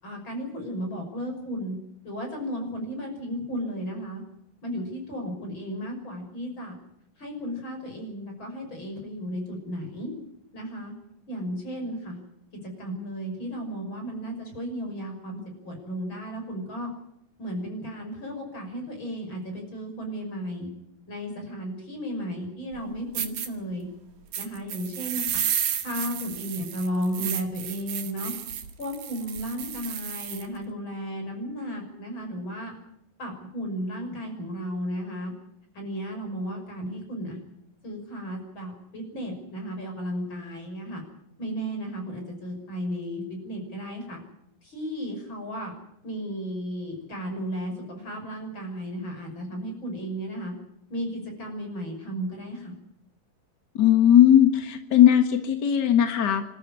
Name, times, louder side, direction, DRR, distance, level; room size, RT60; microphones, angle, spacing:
voice 1, 0.0-1.8 2.0-4.2 4.6-6.7 7.2-10.1 10.5-10.9 11.3-12.2 12.8-16.9 17.4-20.7 21.1-23.9 24.4-25.4 25.8-28.3 28.8-32.7 33.2-35.3 35.7-37.4 37.8-41.0 41.4-44.2 44.6-45.7 46.0-50.5 50.9-52.7, equal, 30° left, 3 dB, 6.7 m, -34 dB
sound 1, 22.7-22.8 23.1-23.5 24.3-30.5, right 9 dB, 85° right, 3.7 m, -32 dB
voice 2, 53.8-56.6, left 10 dB, 50° left, 7 dB, 1.3 m, -18 dB
26.5 x 13.5 x 9.9 m, 0.78 s
omnidirectional pair, 4.1 m